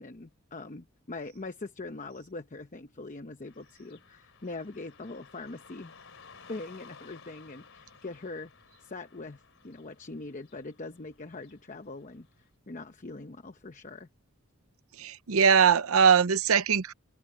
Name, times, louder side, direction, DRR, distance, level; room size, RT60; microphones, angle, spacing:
voice 1, 0.0-5.9 6.5-8.5 8.8-14.1, left 3 dB, 35° left, 0.8 m, -42 dB
Car passing by / Traffic noise roadway noise, 3.4-12.5, left 5 dB, 65° left, 4.0 m, -56 dB
voice 2, 15.0-16.9, right 6 dB, 90° right, 0.7 m, -21 dB
head